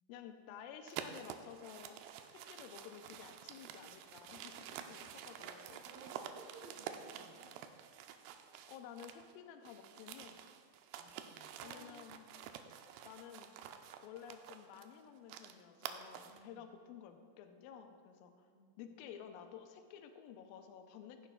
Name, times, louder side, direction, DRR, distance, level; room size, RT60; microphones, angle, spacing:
voice 1, 0.1-2.0 2.3-5.8 8.7-10.4 11.6-12.3 13.0-13.5 14.0-18.5 18.8-21.3, left 8 dB, 80° left, 6 dB, 2.2 m, -53 dB
sound 1, 0.9-9.3 9.6-16.4, right 9 dB, 90° right, 2.6 m, -49 dB
voice 2, 5.8-7.5 10.9-11.9 16.2-16.7 18.5-18.9, right 2 dB, 70° right, -2 dB, 3.1 m, -57 dB
15.0 x 10.5 x 2.3 m, 2.2 s
omnidirectional pair, 4.5 m